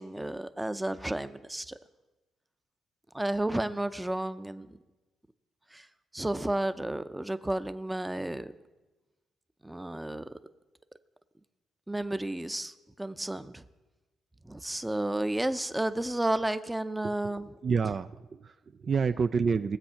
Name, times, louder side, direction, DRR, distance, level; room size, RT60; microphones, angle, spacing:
voice 1, 0.0-1.8 3.1-4.8 5.7-5.9 6.1-8.5 9.6-10.2 11.9-13.6 14.4-17.5, right 1 dB, 10° right, 11 dB, 0.7 m, -32 dB
voice 2, 17.6-19.8, right 5 dB, 45° right, 11 dB, 0.4 m, -29 dB
19.0 x 7.8 x 5.7 m, 1.1 s
cardioid pair, 90°, 0 cm